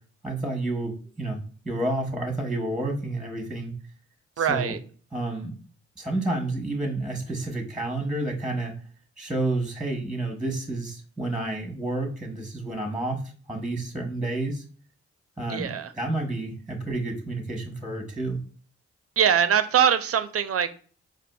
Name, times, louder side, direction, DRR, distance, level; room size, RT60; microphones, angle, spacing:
voice 1, 0.2-1.4 1.6-3.7 4.4-4.7 5.1-5.5 6.0-8.7 9.2-14.6 15.4-18.4, right 2 dB, ahead, 2 dB, 0.9 m, -30 dB
voice 2, 4.4-4.8 15.5-15.9 19.2-20.7, right 8 dB, 50° right, 11 dB, 0.4 m, -22 dB
4.2 x 2.4 x 2.2 m, 0.41 s
cardioid pair, 50°, 29 cm